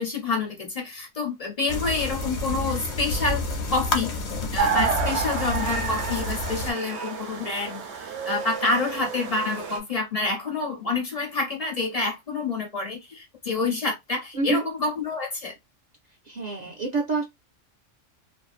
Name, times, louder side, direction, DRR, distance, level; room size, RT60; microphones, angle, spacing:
voice 1, 0.0-4.1 4.5-15.5, left 3 dB, 40° left, 0.6 m, -28 dB
sound 1, 1.7-6.7, left 2 dB, 65° left, 1.0 m, -29 dB
sound 2, 4.6-9.8, right 6 dB, 65° right, 0.9 m, -30 dB
voice 2, 14.3-14.6 16.3-17.2, right 4 dB, 50° right, 0.5 m, -27 dB
2.5 x 2.0 x 2.4 m
omnidirectional pair, 1.3 m